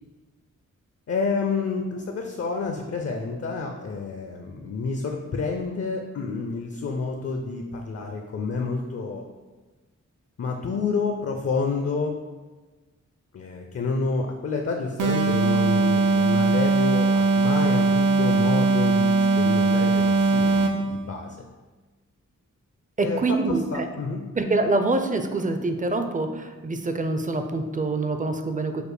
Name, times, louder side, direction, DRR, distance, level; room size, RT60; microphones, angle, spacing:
voice 1, 1.1-9.3 10.4-12.1 13.3-21.4 23.0-24.2, left 4 dB, 50° left, 3 dB, 0.5 m, -29 dB
sound 1, 15.0-20.9, right 3 dB, 80° right, 0.6 m, -20 dB
voice 2, 23.0-23.9 24.4-28.8, right 2 dB, 25° right, 7 dB, 0.4 m, -25 dB
5.0 x 2.1 x 4.8 m, 1.3 s
wide cardioid pair, 80°, 31 cm